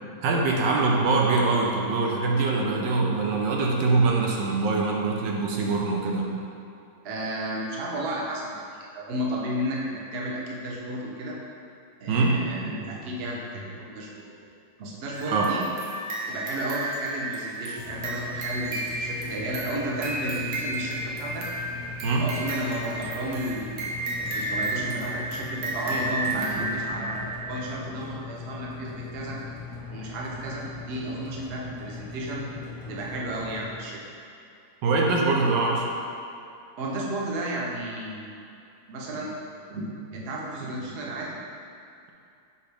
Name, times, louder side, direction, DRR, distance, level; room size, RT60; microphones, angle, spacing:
voice 1, 0.2-6.3 12.1-12.4 15.3-15.5 22.0-22.3 34.8-35.8, right 3 dB, 85° right, -1 dB, 1.5 m, -23 dB
voice 2, 7.0-11.4 12.0-14.3 14.8-15.6 16.3-21.5 22.2-29.4 29.9-32.5 32.9-34.0 36.8-38.4 38.9-41.4, right 1 dB, 45° right, -3 dB, 0.8 m, -33 dB
sound 1, 15.1-27.8, right 2 dB, 60° right, 1.3 m, -33 dB
sound 2, 17.7-33.7, left 4 dB, 5° right, 0.7 m, -40 dB
7.1 x 4.9 x 3.4 m, 2.6 s
omnidirectional pair, 2.0 m